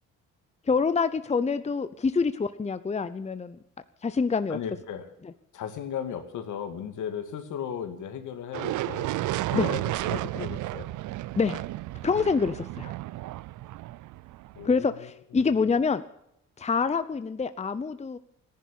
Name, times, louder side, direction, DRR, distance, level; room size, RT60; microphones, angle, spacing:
voice 1, 0.7-3.6 4.0-4.6 5.2-5.3 9.5-9.7 11.4-11.6 12.0-12.9 14.6-16.0 16.6-18.2, left 5 dB, 20° left, 12 dB, 0.8 m, -26 dB
voice 2, 4.5-5.1 5.5-9.1 9.5-10.9 14.5-14.9, left 8 dB, 75° left, 7 dB, 2.3 m, -36 dB
sound 1, 8.5-14.7, right 16 dB, 75° right, 0.5 m, -32 dB
15.0 x 10.5 x 8.6 m, 0.76 s
cardioid pair, 90°, 30 cm